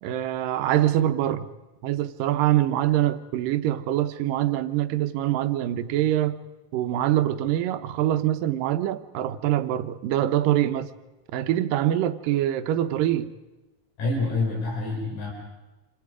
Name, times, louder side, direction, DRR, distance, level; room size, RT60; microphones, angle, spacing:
voice 1, 0.0-1.5 1.8-6.4 6.7-10.9 11.3-13.3, right 12 dB, 90° right, 2.6 m, -24 dB
voice 2, 14.0-15.3, left 3 dB, 60° left, 5.5 m, -27 dB
27.0 x 26.0 x 5.0 m
omnidirectional pair, 3.8 m